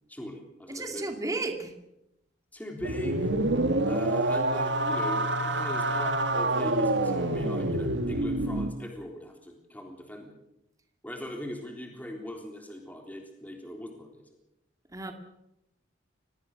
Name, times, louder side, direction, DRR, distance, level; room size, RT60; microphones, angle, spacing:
voice 1, 0.1-1.1 2.5-3.3 3.9-10.3 11.0-14.2, left 1 dB, 10° left, 2 dB, 3.6 m, -40 dB
voice 2, 0.7-1.7 14.9-15.1, right 2 dB, 20° right, 5 dB, 2.4 m, -33 dB
sound 1, 2.8-8.7, right 2 dB, 65° right, 1.6 m, -27 dB
25.5 x 19.0 x 6.7 m, 0.84 s
head